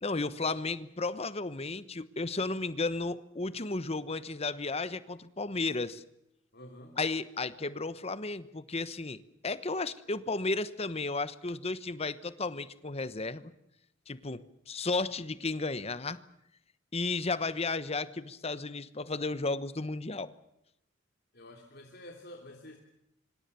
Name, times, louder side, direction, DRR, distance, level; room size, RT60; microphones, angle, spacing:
voice 1, 0.0-6.0 7.0-13.5 14.1-16.2 16.9-20.3, left 3 dB, 35° left, 15 dB, 1.1 m, -33 dB
voice 2, 6.5-7.0 21.3-22.8, left 1 dB, 55° left, 2 dB, 3.1 m, -49 dB
25.5 x 25.0 x 7.0 m, 0.80 s
head